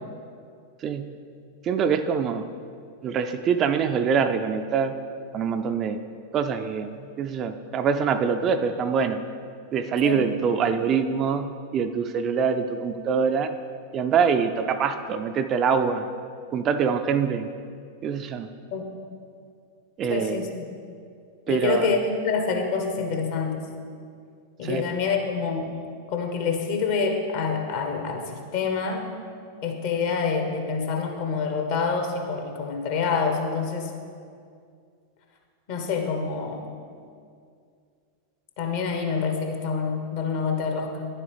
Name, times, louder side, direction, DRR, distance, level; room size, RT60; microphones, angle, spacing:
voice 1, 1.6-2.5 3.0-4.9 5.3-6.0 6.3-9.2 9.7-13.5 13.9-16.1 16.5-17.5 18.0-18.5 20.0-20.5 21.5-21.9 24.6-24.8, right 6 dB, 30° right, 8 dB, 0.4 m, -24 dB
voice 2, 20.1-20.6 21.5-23.7 24.6-25.7 26.1-29.1 29.6-33.9 35.7-36.6 38.6-41.1, left 5 dB, 50° left, 3 dB, 1.0 m, -27 dB
9.9 x 7.2 x 3.4 m, 2.3 s
figure-of-eight pair, 90°, 0 cm